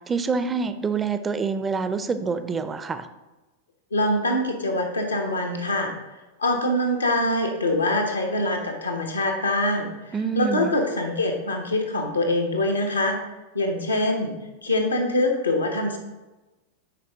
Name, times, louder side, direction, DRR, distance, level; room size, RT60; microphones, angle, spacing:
voice 1, 0.1-3.1 10.1-10.7, right 5 dB, 20° right, 10 dB, 0.5 m, -26 dB
voice 2, 3.9-5.9 6.4-9.9 10.3-13.2 13.5-14.3 14.6-16.0, left 1 dB, 80° left, 3 dB, 1.2 m, -24 dB
10.0 x 4.8 x 3.5 m, 1.1 s
figure-of-eight pair, 90°, 0 cm